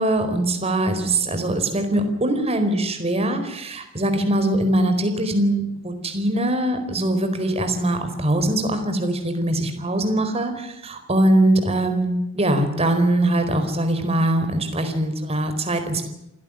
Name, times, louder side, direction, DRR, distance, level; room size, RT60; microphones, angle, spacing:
voice 1, 0.0-16.0, right 1 dB, 30° right, 7 dB, 4.4 m, -22 dB
28.0 x 16.5 x 8.9 m, 0.85 s
head